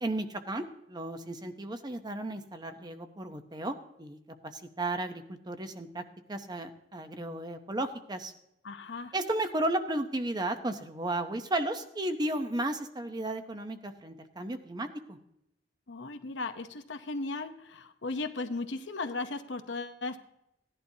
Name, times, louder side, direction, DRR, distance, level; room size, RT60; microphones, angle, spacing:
voice 1, 0.0-4.2 4.4-6.0 6.3-8.3 9.1-15.2, right 1 dB, 25° right, 8 dB, 0.8 m, -34 dB
voice 2, 8.6-9.1 15.9-20.2, left 3 dB, 75° left, 7 dB, 0.8 m, -36 dB
17.0 x 11.0 x 2.8 m, 0.81 s
head